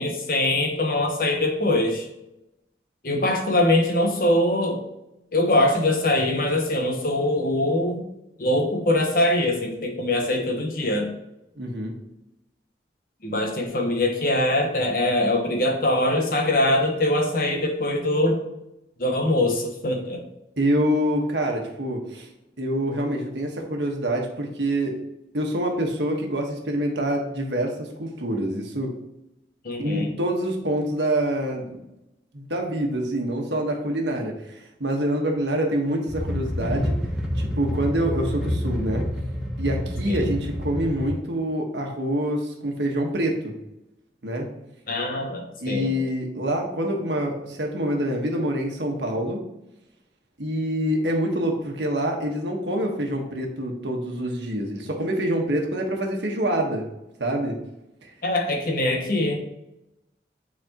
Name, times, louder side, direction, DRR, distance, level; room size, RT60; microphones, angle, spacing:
voice 1, 0.0-2.1 3.0-4.8 5.3-8.1 8.4-11.1 13.2-18.4 19.0-20.2 29.6-30.1 40.1-40.3 44.9-45.9 58.2-59.4, left 1 dB, 50° left, 3 dB, 1.2 m, -23 dB
voice 2, 11.6-11.9 20.6-22.3 22.6-25.0 25.3-28.9 29.8-31.8 32.3-37.0 37.3-39.1 39.6-43.5 44.2-44.5 45.6-49.4 50.4-56.9 57.2-57.6, right 1 dB, 85° right, 1 dB, 1.4 m, -26 dB
sound 1, 36.1-41.1, equal, 5° right, 0.9 m, -28 dB
9.6 x 4.3 x 3.0 m, 0.89 s
head